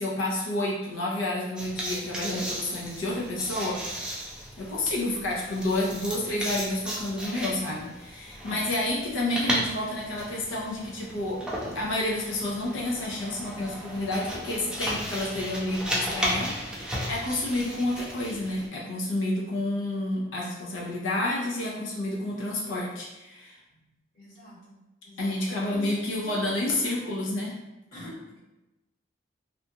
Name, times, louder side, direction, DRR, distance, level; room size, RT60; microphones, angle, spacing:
voice 1, 0.0-4.1 4.6-23.6 25.2-27.5, left 1 dB, 75° left, -4 dB, 0.6 m, -30 dB
sound 1, 1.6-18.7, equal, 5° right, 0.4 m, -35 dB
voice 2, 8.4-9.0 24.1-24.8 25.0-26.4 27.9-28.4, left 2 dB, 50° left, -8 dB, 1.4 m, -45 dB
2.6 x 2.3 x 2.7 m, 1.0 s
head